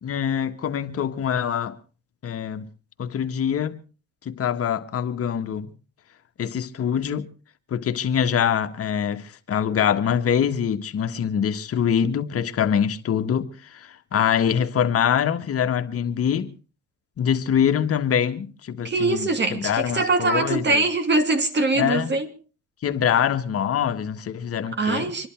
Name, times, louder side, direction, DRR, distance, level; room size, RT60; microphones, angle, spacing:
voice 1, 0.0-1.8 2.2-2.7 3.0-3.8 4.2-5.7 6.4-7.3 7.7-16.5 17.2-20.8 21.8-22.1 22.8-25.1, left 8 dB, 50° left, 1.6 m, -24 dB
voice 2, 18.8-22.3 24.8-25.3, right 3 dB, 35° right, 2.7 m, -22 dB
26.0 x 11.5 x 4.5 m
cardioid pair, 100°, 30 cm